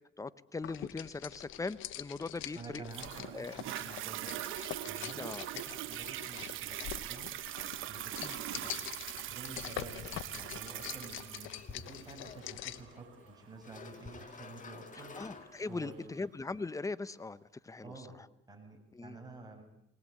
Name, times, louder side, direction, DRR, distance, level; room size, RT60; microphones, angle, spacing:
voice 1, 0.2-2.8 3.3-3.5 5.1-5.5 8.2-8.4 15.2-17.9 18.9-19.2, left 3 dB, 15° left, 15 dB, 0.8 m, -40 dB
sound 1, 0.6-12.9, left 13 dB, 85° left, 0.9 m, -45 dB
voice 2, 2.5-7.3 7.8-8.2 8.5-8.9 9.1-16.2 17.8-18.2 18.5-19.6, right 3 dB, 20° right, 2 dB, 7.1 m, -50 dB
Toilet flush, 2.9-15.9 16.5-16.6, right 14 dB, 85° right, 1.0 m, -42 dB
sound 2, 10.3-16.1, left 5 dB, 40° left, 2.2 m, -53 dB
20.5 x 19.5 x 8.6 m, 0.81 s
cardioid pair, 90°, 20 cm